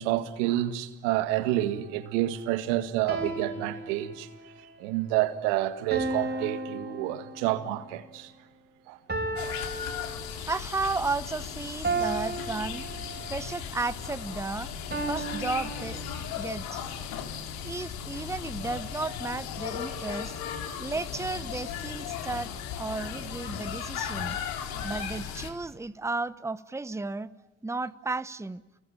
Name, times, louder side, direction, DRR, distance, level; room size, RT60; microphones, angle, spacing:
voice 1, 0.0-4.3 4.8-8.3 8.9-9.0, right 14 dB, 80° right, 1.9 m, -29 dB
sound 1, 1.1-1.5 3.1-4.6 5.9-7.7 9.1-10.7 11.8-13.5 14.9-16.5, right 3 dB, 25° right, 5.9 m, -34 dB
sound 2, 9.4-25.5, left 8 dB, 75° left, 3.1 m, -36 dB
voice 2, 10.5-12.9 13.3-14.8 15.1-16.0 16.3-16.8 17.6-20.3 20.8-24.4 24.8-27.3 27.6-28.6, right 3 dB, 10° right, 1.0 m, -33 dB
29.0 x 21.5 x 8.9 m
hypercardioid pair, 60°, 36 cm